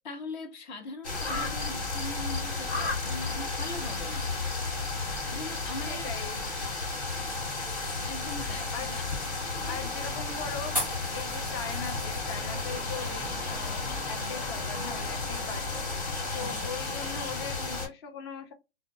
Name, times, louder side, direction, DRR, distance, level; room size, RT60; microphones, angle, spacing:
voice 1, 0.0-4.3 4.7-6.1 8.0-9.0 9.4-9.9 16.3-16.7, left 2 dB, 45° left, 0.8 m, -41 dB
sound 1, 1.0-17.9, left 3 dB, 80° left, 1.4 m, -33 dB
sound 2, 5.8-14.3, left 1 dB, 5° left, 0.9 m, -43 dB
voice 2, 5.9-6.5 8.7-8.9 9.7-10.8 11.1-15.8 16.3-18.5, left 6 dB, 25° left, 0.4 m, -40 dB
2.2 x 2.2 x 2.6 m
hypercardioid pair, 135°, 33 cm